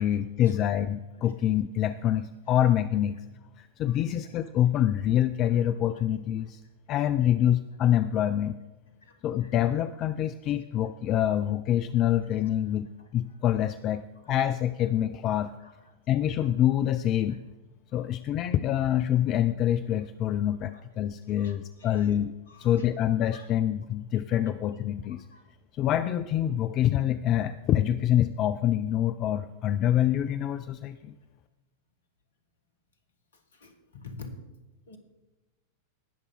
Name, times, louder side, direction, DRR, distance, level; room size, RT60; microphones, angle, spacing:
voice 1, 0.0-3.2 3.6-6.6 6.9-8.6 9.2-15.5 16.1-17.4 17.9-22.3 22.6-25.2 25.7-31.2, left 11 dB, 35° left, 12 dB, 0.4 m, -26 dB
voice 2, 21.4-22.0 22.5-22.7 23.3-23.5 25.3-25.4 33.5-34.4 34.9-35.0, left 3 dB, 70° left, 7 dB, 1.7 m, -46 dB
19.0 x 6.9 x 4.3 m, 1.1 s
figure-of-eight pair, 90°, 0 cm